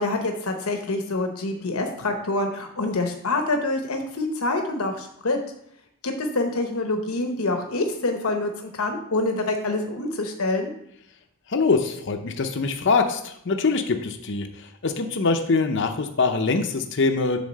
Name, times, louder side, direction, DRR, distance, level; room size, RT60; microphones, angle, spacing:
voice 1, 0.0-5.4 6.0-10.7, left 2 dB, 85° left, 4 dB, 0.9 m, -26 dB
voice 2, 11.5-14.5 14.8-17.4, left 4 dB, 55° left, 6 dB, 0.6 m, -23 dB
7.3 x 3.8 x 6.5 m, 0.73 s
head